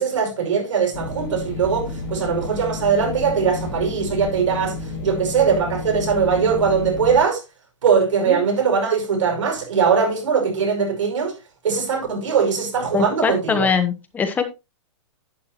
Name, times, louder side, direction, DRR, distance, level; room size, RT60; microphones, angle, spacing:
voice 1, 0.0-4.7 5.0-7.4 7.8-11.3 11.6-13.7, right 6 dB, 80° right, 5.6 m, -20 dB
sound 1, 0.9-7.2, left 3 dB, 35° left, 4.2 m, -31 dB
voice 2, 12.9-14.5, left 6 dB, 10° left, 0.9 m, -22 dB
11.0 x 9.5 x 2.9 m
hypercardioid pair, 160°, 15 cm